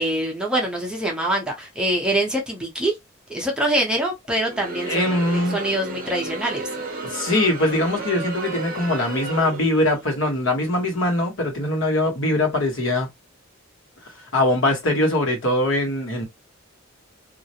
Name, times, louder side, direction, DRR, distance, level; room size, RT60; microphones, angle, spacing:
voice 1, 0.0-3.0 3.3-6.7, right 1 dB, 5° right, 0.7 m, -24 dB
Crowd, 4.3-10.1, right 3 dB, 45° right, 0.6 m, -33 dB
voice 2, 4.9-5.6 7.0-13.1 14.3-16.2, left 1 dB, 75° left, 1.1 m, -22 dB
2.4 x 2.0 x 2.8 m
head